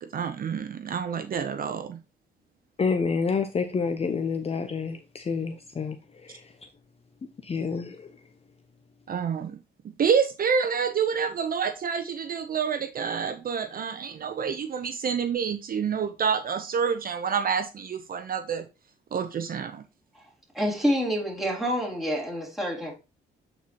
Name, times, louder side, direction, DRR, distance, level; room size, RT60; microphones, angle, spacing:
voice 1, 0.0-2.0 9.1-9.6 10.0-18.7 19.1-19.8, right 6 dB, 45° right, 0.7 m, -28 dB
voice 2, 2.8-6.7 7.4-8.2, left 5 dB, 30° left, 0.7 m, -29 dB
voice 3, 20.5-23.0, equal, ahead, 3.3 m, -27 dB
8.3 x 4.5 x 2.8 m
cardioid pair, 90°, 20 cm